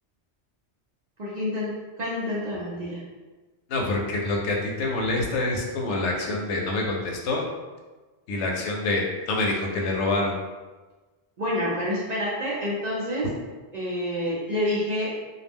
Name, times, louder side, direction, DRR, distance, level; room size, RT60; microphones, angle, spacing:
voice 1, 1.2-3.0 11.4-13.3 13.7-15.1, left 1 dB, 55° right, -6 dB, 0.5 m, -28 dB
voice 2, 3.7-7.5 8.3-10.4, left 2 dB, 90° left, 0 dB, 0.9 m, -26 dB
2.3 x 2.0 x 3.4 m, 1.3 s
omnidirectional pair, 1.2 m